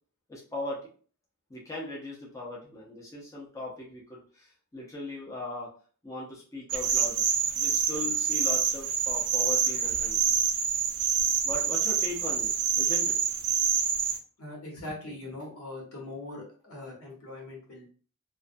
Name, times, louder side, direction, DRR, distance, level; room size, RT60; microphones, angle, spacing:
voice 1, 0.3-0.8 1.5-4.5 4.7-5.7 6.0-7.2 7.6-10.3 11.4-13.1, left 2 dB, 15° left, -4 dB, 0.6 m, -38 dB
sound 1, 6.7-14.2, right 7 dB, 80° right, 0.4 m, -26 dB
voice 2, 14.4-17.9, left 2 dB, 70° left, -2 dB, 1.0 m, -41 dB
2.3 x 2.2 x 2.5 m, 0.42 s
head